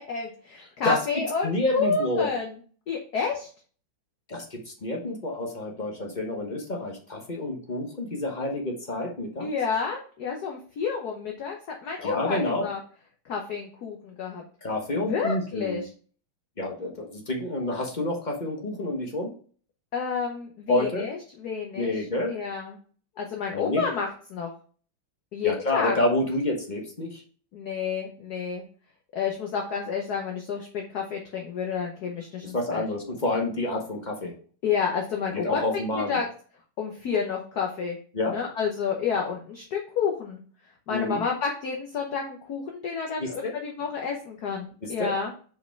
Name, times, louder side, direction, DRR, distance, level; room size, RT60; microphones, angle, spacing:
voice 1, 0.0-2.5 2.9-3.5 9.4-12.8 13.2-14.4 15.0-15.9 19.9-21.9 22.3-22.8 23.2-24.5 25.3-25.9 27.5-28.6 29.1-32.8 34.6-36.3 36.8-38.0 38.3-40.4 40.9-45.3, left 6 dB, 60° left, 1 dB, 1.2 m, -30 dB
voice 2, 1.4-2.3 4.3-9.5 12.0-12.7 14.6-15.8 16.6-19.3 20.7-21.1 21.7-22.4 23.5-23.9 25.4-27.2 32.5-34.3 35.3-36.2 38.1-38.4 40.9-41.2 43.2-43.5 44.8-45.2, left 2 dB, 30° left, 0 dB, 0.9 m, -28 dB
5.3 x 4.9 x 4.5 m, 0.43 s
omnidirectional pair, 2.3 m